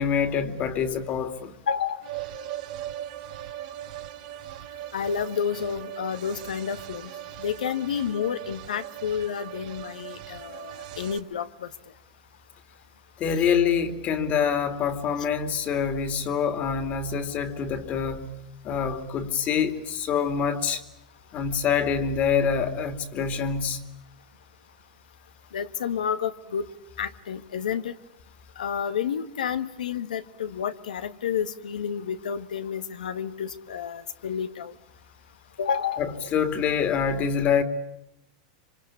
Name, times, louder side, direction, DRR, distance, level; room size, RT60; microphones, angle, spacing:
voice 1, 0.0-1.5 13.2-18.4 18.6-20.8 21.3-23.8 36.0-37.6, left 7 dB, 35° left, 2.7 m, -26 dB
voice 2, 1.7-2.0 4.9-7.1 7.4-11.5 25.5-26.6 27.0-27.9 28.6-34.7 35.6-36.0, left 7 dB, 90° left, 1.5 m, -30 dB
sound 1, 2.0-11.2, right 12 dB, 65° right, 2.4 m, -39 dB
26.0 x 25.0 x 8.6 m
hypercardioid pair, 120°, 4 cm